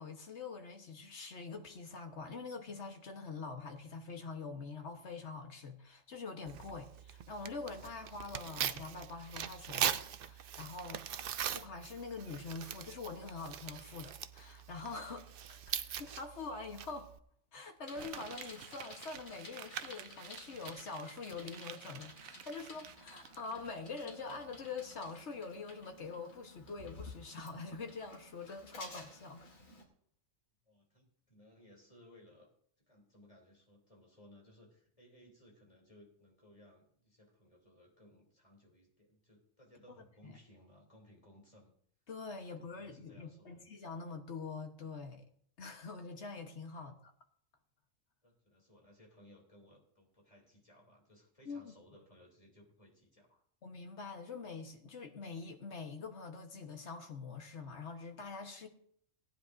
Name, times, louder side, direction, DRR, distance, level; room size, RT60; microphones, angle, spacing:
voice 1, 0.0-11.0 11.5-17.1 17.5-29.4 40.2-40.4 42.1-45.2 45.6-47.1 51.4-51.7 53.6-58.7, left 4 dB, 55° left, 1.5 m, -45 dB
Tearing, 6.5-17.2, right 9 dB, 60° right, 0.6 m, -41 dB
Bicycle, 17.8-29.8, left 2 dB, 75° left, 2.5 m, -54 dB
Crumpling crinkling, 17.9-23.7 24.0-24.1, right 10 dB, 80° right, 1.0 m, -50 dB
voice 2, 30.6-32.5 32.9-41.7 42.4-43.6 46.7-46.9 48.2-53.4, left 1 dB, 25° left, 3.4 m, -62 dB
18.5 x 10.0 x 2.7 m
omnidirectional pair, 1.4 m